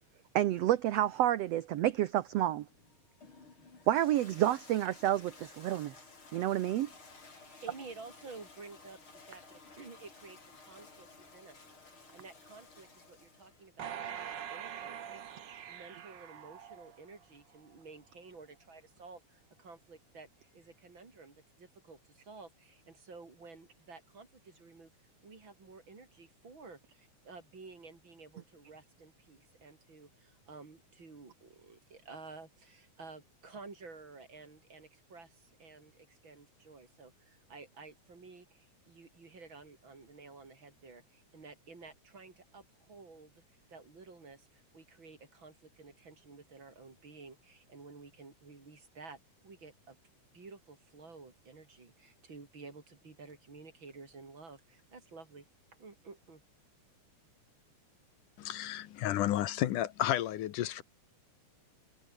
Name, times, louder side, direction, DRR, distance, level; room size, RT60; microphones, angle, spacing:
voice 1, 0.3-2.6 3.9-5.9 6.3-6.9, right 13 dB, 70° right, 1.6 m, -29 dB
Toilet flush, 2.7-13.7, left 4 dB, 40° left, 5.4 m, -55 dB
voice 2, 7.3-24.9 25.2-50.0 50.3-55.5 55.8-56.4, right 4 dB, 35° right, 4.4 m, -53 dB
sound 1, 13.8-17.2 17.7-17.8, right 9 dB, 55° right, 1.3 m, -44 dB
voice 3, 58.4-60.8, left 13 dB, 80° left, 2.7 m, -32 dB
omnidirectional pair, 3.7 m